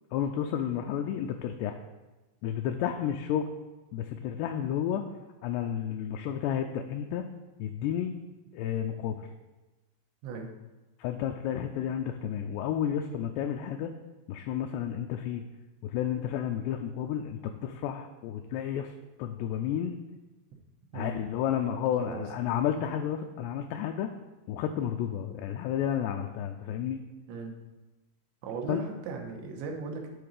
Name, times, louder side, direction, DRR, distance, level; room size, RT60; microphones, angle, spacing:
voice 1, 0.1-1.8 2.4-3.5 3.9-5.0 5.4-7.3 7.6-8.1 8.5-9.2 11.0-13.9 14.3-15.4 15.8-18.9 19.2-20.0 20.9-24.1 24.5-27.0 28.7-28.8, left 9 dB, 85° left, 5 dB, 2.4 m, -31 dB
voice 2, 22.0-22.6 27.3-27.5 28.4-30.1, right 4 dB, 90° right, 2 dB, 3.3 m, -38 dB
10.0 x 3.9 x 6.6 m, 1.1 s
omnidirectional pair, 5.1 m